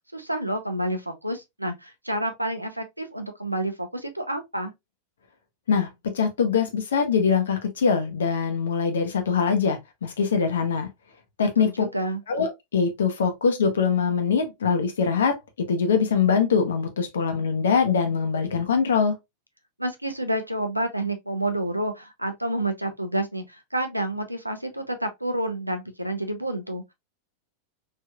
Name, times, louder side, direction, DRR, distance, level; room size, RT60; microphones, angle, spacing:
voice 1, 0.1-4.7 11.6-12.2 19.8-26.9, right 1 dB, 85° right, 0.5 m, -29 dB
voice 2, 5.7-10.9 11.4-11.9 12.3-19.2, left 6 dB, 65° left, 0.7 m, -23 dB
3.3 x 2.7 x 2.2 m
figure-of-eight pair, 90°, 0 cm